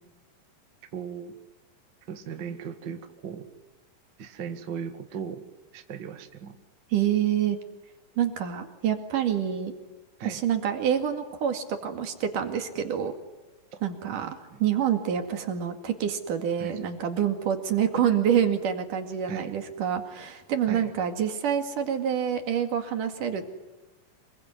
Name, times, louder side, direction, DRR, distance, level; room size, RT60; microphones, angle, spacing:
voice 1, 0.9-1.3 2.1-3.5 4.2-5.4 5.7-6.6 10.2-10.4 14.1-14.6 16.6-16.8 19.3-19.5 20.7-20.9, right 7 dB, 40° right, 7 dB, 2.0 m, -37 dB
voice 2, 6.9-7.6 8.2-9.7 10.2-13.1 13.8-23.5, right 9 dB, 70° right, 6 dB, 3.7 m, -27 dB
27.0 x 22.0 x 9.6 m, 1.1 s
omnidirectional pair, 3.9 m